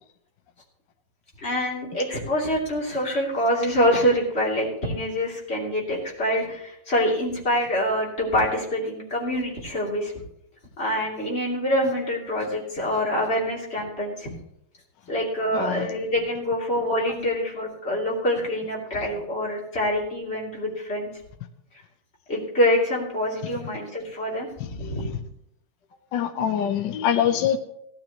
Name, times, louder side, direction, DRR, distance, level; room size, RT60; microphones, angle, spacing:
voice 1, 1.4-10.1 10.8-14.3 15.1-21.1 22.3-24.5 24.8-25.1, equal, 30° left, -3 dB, 3.2 m, -25 dB
voice 2, 15.5-15.9 24.6-25.2 26.1-27.6, left 9 dB, 65° left, 7 dB, 1.3 m, -25 dB
17.0 x 12.0 x 3.0 m, 0.78 s
omnidirectional pair, 2.4 m